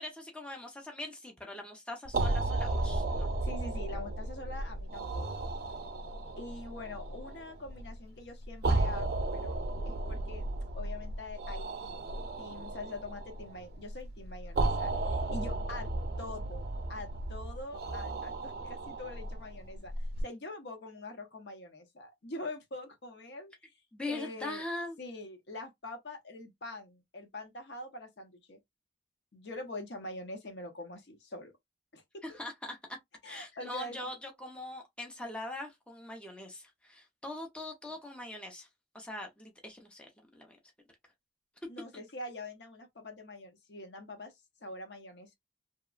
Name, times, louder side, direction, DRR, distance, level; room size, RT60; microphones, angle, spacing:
voice 1, 0.0-3.3 23.9-25.0 32.2-33.0 33.2-38.7 38.9-40.6, left 2 dB, 5° left, 0.6 m, -42 dB
sound 1, 2.0-20.2, right 2 dB, 55° right, 0.4 m, -34 dB
voice 2, 3.4-5.5 6.4-10.4 10.8-12.0 12.4-15.9 16.2-19.9 20.2-23.5 24.1-24.6 25.0-28.6 29.3-31.5 31.9-32.4 33.2-34.0 41.7-44.3 44.6-45.4, left 2 dB, 65° left, 0.7 m, -44 dB
2.9 x 2.2 x 2.3 m
head